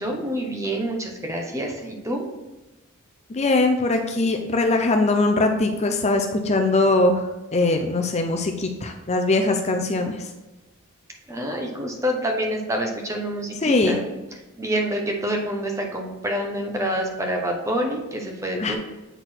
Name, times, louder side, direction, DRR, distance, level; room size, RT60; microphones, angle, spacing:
voice 1, 0.0-2.3 11.3-14.1 14.6-18.8, equal, 15° right, 1 dB, 1.0 m, -27 dB
voice 2, 3.3-10.3 13.6-14.0 18.6-18.8, left 2 dB, 30° left, 4 dB, 0.5 m, -21 dB
8.0 x 4.0 x 4.4 m, 1.1 s
head